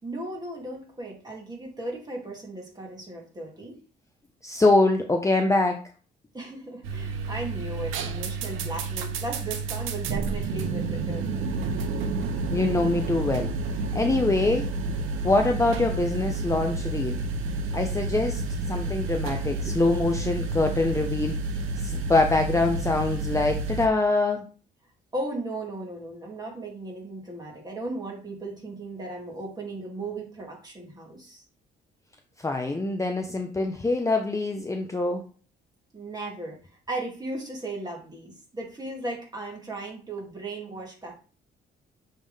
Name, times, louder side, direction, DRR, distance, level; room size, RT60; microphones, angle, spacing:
voice 1, 0.0-3.8 6.3-11.5 25.1-31.4 35.9-36.6 36.9-41.1, right 2 dB, 20° right, -2 dB, 2.7 m, -36 dB
voice 2, 4.4-5.8 12.5-13.5 13.9-14.7 15.2-17.2 17.7-21.4 21.8-24.4 32.4-35.2, left 2 dB, 15° left, 4 dB, 0.8 m, -24 dB
sound 1, 6.8-23.9, right 3 dB, 90° right, 0.9 m, -30 dB
7.1 x 3.7 x 3.5 m, 0.38 s
cardioid pair, 90°, 20 cm